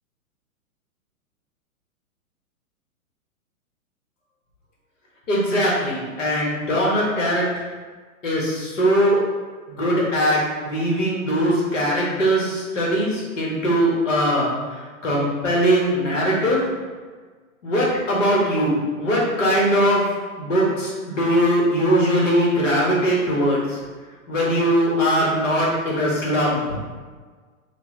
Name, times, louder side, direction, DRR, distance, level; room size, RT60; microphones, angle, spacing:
voice 1, 5.3-7.5 8.2-9.2 9.7-14.5 15.0-16.6 17.6-20.0 20.4-23.8 24.3-26.6, equal, 60° left, -4 dB, 1.3 m, -20 dB
4.3 x 2.3 x 2.9 m, 1.4 s
figure-of-eight pair, 110°, 43 cm